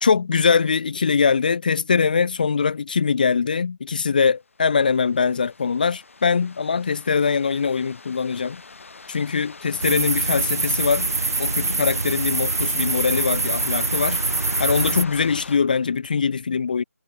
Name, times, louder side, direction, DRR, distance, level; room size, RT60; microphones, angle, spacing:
voice 1, 0.0-8.6 9.1-11.1 11.4-14.2 14.6-16.8, left 5 dB, 35° left, 0.4 m, -22 dB
sound 1, 4.7-15.6, left 4 dB, 55° left, 4.9 m, -41 dB
sound 2, 9.8-15.0, right 3 dB, 70° right, 0.8 m, -24 dB
figure-of-eight pair, 155°, 8 cm